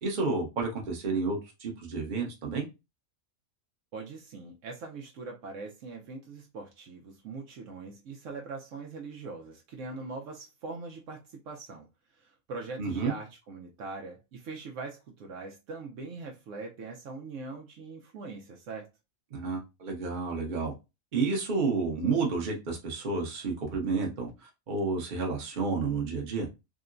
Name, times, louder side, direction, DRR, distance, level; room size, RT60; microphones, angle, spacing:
voice 1, 0.0-2.6 12.8-13.1 19.3-20.7 21.1-26.5, right 4 dB, 40° right, 0.9 m, -30 dB
voice 2, 3.9-11.9 12.1-18.9, right 3 dB, 70° right, 0.9 m, -42 dB
3.7 x 2.1 x 2.5 m
omnidirectional pair, 1.4 m